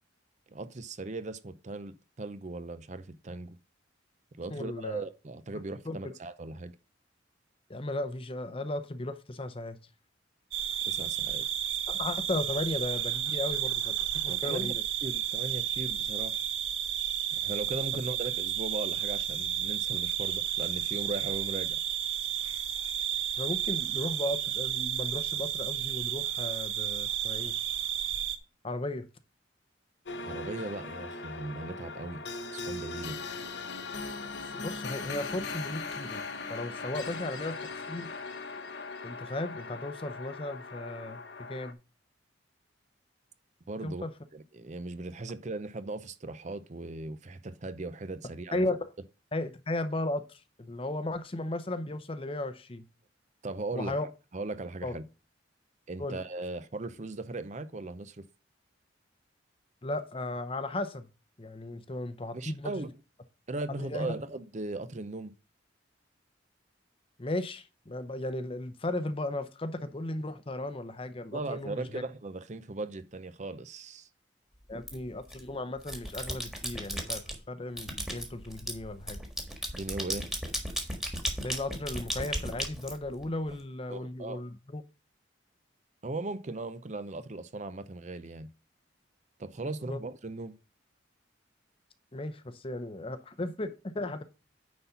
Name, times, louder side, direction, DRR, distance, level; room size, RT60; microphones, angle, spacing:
voice 1, 0.5-3.6 4.4-6.7 10.9-11.5 14.2-14.7 15.0-16.4 17.4-21.8 30.2-32.2 32.5-33.2 43.7-44.0 44.3-48.6 53.4-55.0 55.9-58.3 62.3-62.9 63.5-65.3 71.3-74.1 79.7-80.3 83.9-84.4 86.0-88.5 89.4-90.5, right 2 dB, 40° right, 0.6 m, -38 dB
voice 2, 4.5-5.0 5.9-6.1 7.7-9.8 11.9-13.9 14.2-14.8 23.4-27.6 28.6-29.1 34.5-36.2 36.5-37.6 37.9-38.1 39.0-41.8 43.8-44.1 48.5-48.9 49.3-52.9 53.7-54.1 54.8-55.0 56.0-56.2 59.8-61.1 61.4-62.8 63.8-64.1 67.2-72.0 74.7-79.2 81.4-84.8 89.8-90.0 92.1-94.2, left 2 dB, 30° left, 0.7 m, -35 dB
sound 1, 10.5-28.4, right 11 dB, 90° right, 1.0 m, -32 dB
sound 2, 30.1-41.7, left 3 dB, 60° left, 1.0 m, -39 dB
sound 3, 74.9-75.4 75.8-77.4 77.8-83.5, equal, 5° right, 1.5 m, -35 dB
9.6 x 4.2 x 5.6 m
head